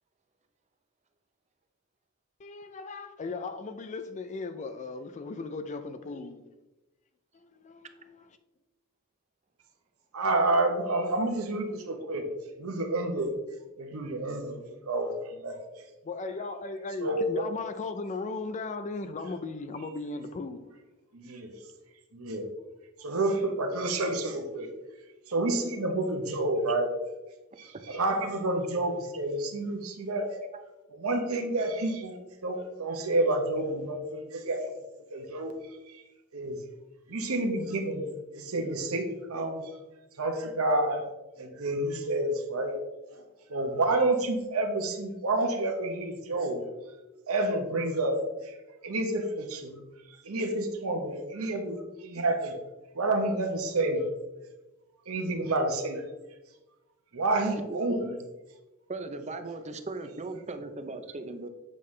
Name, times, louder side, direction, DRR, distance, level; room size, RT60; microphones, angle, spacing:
voice 1, 2.4-6.4 7.3-8.3 16.0-20.7, left 3 dB, 35° left, 9 dB, 0.4 m, -37 dB
voice 2, 10.1-12.2 12.6-13.3 13.8-14.6 14.9-15.6 17.0-17.4 21.1-21.5 22.1-22.5 23.0-24.7 25.3-26.9 27.6-30.3 30.9-34.6 35.1-35.5 35.9-36.0 36.3-36.6 37.1-38.0 38.3-39.6 40.2-41.0 41.4-42.7 43.1-43.2 43.5-46.6 47.3-48.5 48.8-49.8 50.2-52.5 52.9-54.0 55.1-56.1 57.1-58.2, right 2 dB, 70° right, 4 dB, 1.0 m, -29 dB
voice 3, 58.9-61.5, right 3 dB, 30° right, 8 dB, 0.6 m, -38 dB
7.6 x 5.5 x 3.2 m, 1.1 s
head